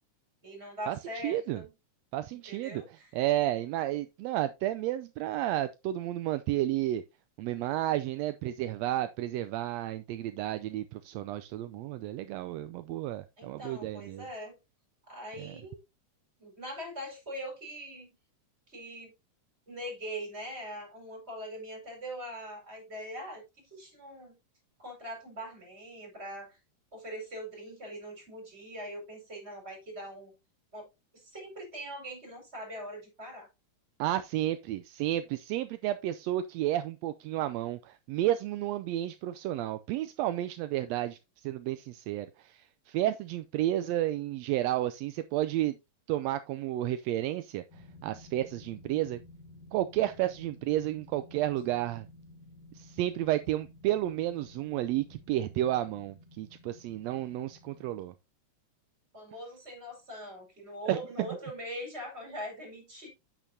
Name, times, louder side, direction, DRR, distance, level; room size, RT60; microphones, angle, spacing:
voice 1, 0.4-1.7 2.5-3.1 13.4-14.5 15.1-15.8 16.4-18.1 18.7-19.1 19.7-23.4 23.7-24.4 24.8-26.6 26.9-30.3 30.7-30.9 31.1-33.5 59.1-63.1, equal, 20° right, 5.0 m, -42 dB
voice 2, 1.2-1.6 2.1-2.8 3.1-7.0 7.4-14.2 15.4-15.5 34.0-45.8 46.1-49.2 49.7-52.1 52.7-58.1 60.9-61.0, right 14 dB, 80° right, 1.6 m, -31 dB
sound 1, 47.7-58.0, left 2 dB, 85° left, 4.0 m, -54 dB
9.0 x 8.3 x 2.7 m
omnidirectional pair, 3.4 m